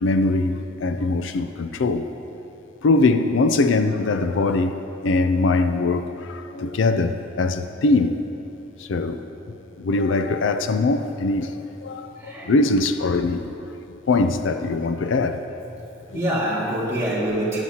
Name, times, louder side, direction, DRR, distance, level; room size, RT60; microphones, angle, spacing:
voice 1, 0.0-2.1 2.8-8.3 8.8-9.2 9.8-11.5 11.8-13.4 14.1-15.4 16.1-16.2, left 3 dB, 75° left, 0.4 m, -22 dB
voice 2, 12.0-12.5 14.8-15.3 15.6-15.9 16.1-17.6, right 1 dB, 15° right, 2.1 m, -26 dB
14.5 x 9.9 x 2.9 m
head